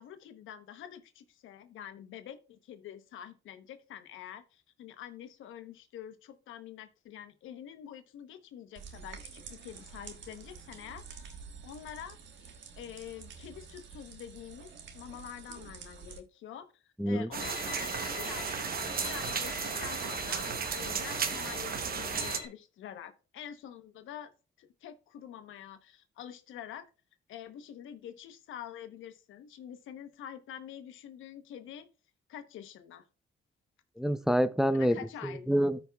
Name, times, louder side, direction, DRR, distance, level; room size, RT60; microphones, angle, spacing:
voice 1, 0.0-20.5 20.7-24.3 24.6-26.9 27.3-31.9 32.3-33.1 34.7-35.5, left 10 dB, 80° left, 1.0 m, -47 dB
sound 1, 8.7-16.2, right 6 dB, 65° right, 1.5 m, -49 dB
voice 2, 17.0-17.3 34.0-35.8, equal, ahead, 0.5 m, -27 dB
sound 2, 17.3-22.4, right 6 dB, 50° right, 1.0 m, -34 dB
Bowed string instrument, 17.4-22.5, left 6 dB, 60° left, 2.1 m, -43 dB
14.0 x 5.3 x 2.3 m
cardioid pair, 90°, 20 cm